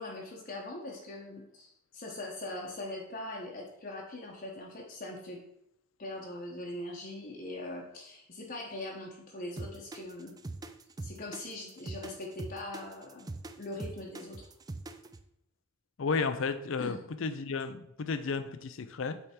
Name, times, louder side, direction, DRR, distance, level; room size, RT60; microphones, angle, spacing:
voice 1, 0.0-5.4 6.0-10.4 11.0-14.5 16.8-17.0, left 1 dB, 45° left, -2 dB, 0.9 m, -41 dB
sound 1, 9.6-15.2, right 2 dB, 20° right, 0.3 m, -42 dB
voice 2, 16.0-19.2, left 4 dB, 65° left, 11 dB, 0.5 m, -33 dB
8.1 x 3.5 x 4.3 m, 0.79 s
head